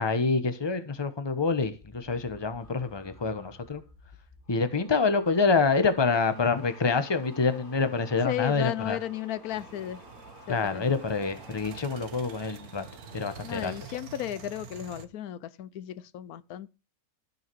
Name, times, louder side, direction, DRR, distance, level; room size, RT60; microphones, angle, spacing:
voice 1, 0.0-3.8 4.5-9.0 10.5-12.8 13.1-13.7, left 4 dB, 20° left, 1.0 m, -26 dB
sound 1, 1.7-14.1 14.4-14.8, left 1 dB, 35° left, 2.5 m, -53 dB
voice 2, 8.2-10.0 10.5-10.9 13.4-16.7, left 12 dB, 90° left, 1.2 m, -34 dB
sound 2, 9.5-15.1, right 7 dB, 85° right, 1.5 m, -47 dB
13.0 x 6.9 x 4.6 m
omnidirectional pair, 1.5 m